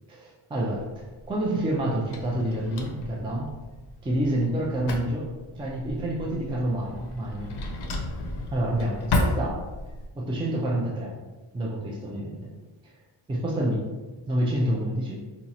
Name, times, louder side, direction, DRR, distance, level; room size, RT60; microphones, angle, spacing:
voice 1, 0.1-3.5 4.0-7.5 8.5-9.7 10.1-11.2 11.5-12.5 12.8-12.9 13.3-13.9 14.3-15.2, right 1 dB, 10° right, -3 dB, 0.3 m, -28 dB
Drawer open or close, 0.7-10.1, left 2 dB, 55° left, 0.6 m, -33 dB
2.8 x 2.4 x 4.0 m, 1.2 s
wide cardioid pair, 145°, 47 cm